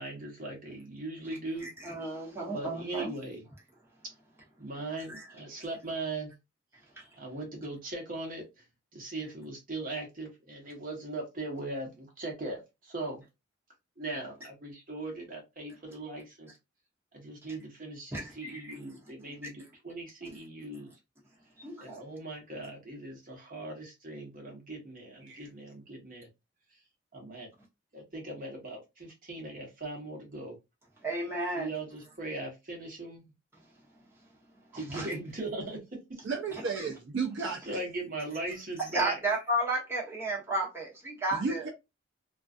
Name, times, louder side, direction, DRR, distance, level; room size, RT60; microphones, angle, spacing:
voice 1, 0.0-1.7 2.5-3.4 4.6-6.3 7.1-8.6 8.9-13.2 14.0-16.6 17.1-20.9 21.8-26.3 27.1-27.5 27.9-30.5 31.5-33.2 34.7-35.8 36.1-36.2 37.7-39.2, right 2 dB, 45° right, 1.1 m, -39 dB
voice 2, 1.6-3.1 5.1-5.2 7.0-7.1 18.1-18.8 21.6-22.0 31.0-31.7 34.7-35.1 38.9-41.7, right 1 dB, 10° right, 1.0 m, -33 dB
voice 3, 36.2-37.8 41.3-41.7, right 4 dB, 65° right, 0.5 m, -33 dB
2.5 x 2.3 x 2.4 m
head